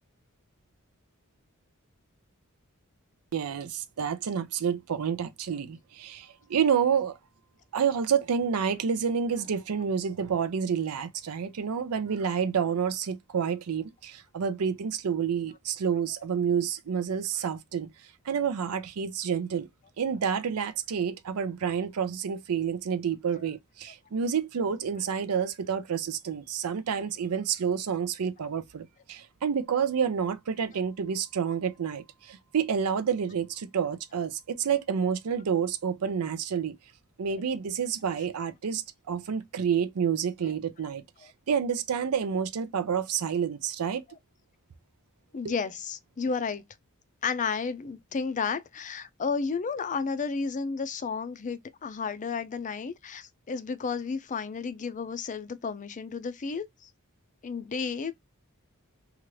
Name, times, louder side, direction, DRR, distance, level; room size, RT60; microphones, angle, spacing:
voice 1, 3.3-7.2 7.7-17.9 18.3-19.7 20.0-36.8 37.2-41.0 41.5-44.0 45.4-45.5, right 7 dB, 85° right, 0.5 m, -29 dB
voice 2, 45.3-46.6 47.2-56.9 57.4-58.1, left 5 dB, 35° left, 0.4 m, -32 dB
2.9 x 2.4 x 3.0 m
head